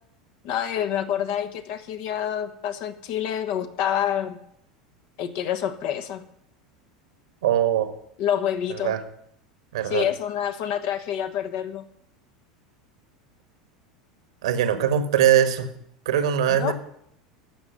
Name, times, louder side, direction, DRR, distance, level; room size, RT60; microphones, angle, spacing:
voice 1, 0.4-4.4 5.2-6.2 8.2-8.9 9.9-11.8 16.6-16.7, left 10 dB, 50° left, 8 dB, 1.3 m, -27 dB
voice 2, 7.4-7.9 8.8-9.0 9.7-10.1 14.4-15.7 16.0-16.7, right 10 dB, 65° right, 10 dB, 1.4 m, -21 dB
12.0 x 7.2 x 9.3 m, 0.73 s
figure-of-eight pair, 80°, 4 cm